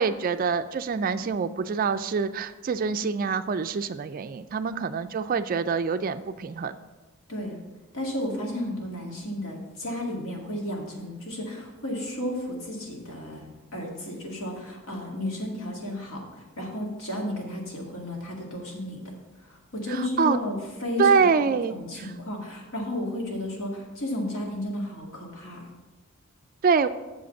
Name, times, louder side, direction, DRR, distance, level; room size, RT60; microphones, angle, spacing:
voice 1, 0.0-6.8 19.9-20.4 21.0-22.1 26.6-26.9, right 5 dB, 40° right, 11 dB, 0.3 m, -25 dB
voice 2, 7.9-13.5 13.7-19.0 19.5-21.3 21.7-25.7, left 1 dB, 65° left, -1 dB, 1.9 m, -33 dB
7.1 x 5.1 x 6.9 m, 1.2 s
head